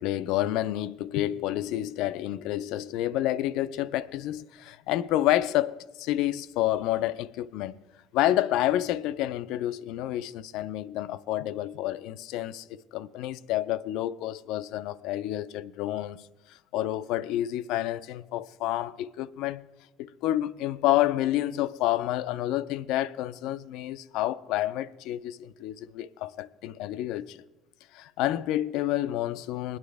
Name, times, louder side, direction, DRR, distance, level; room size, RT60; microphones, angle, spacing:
voice 1, 0.0-7.8 8.1-16.2 16.7-19.6 20.0-27.4 27.9-29.8, left 14 dB, 70° left, 0.3 m, -29 dB
20.0 x 9.5 x 3.4 m
cardioid pair, 130°, 0 cm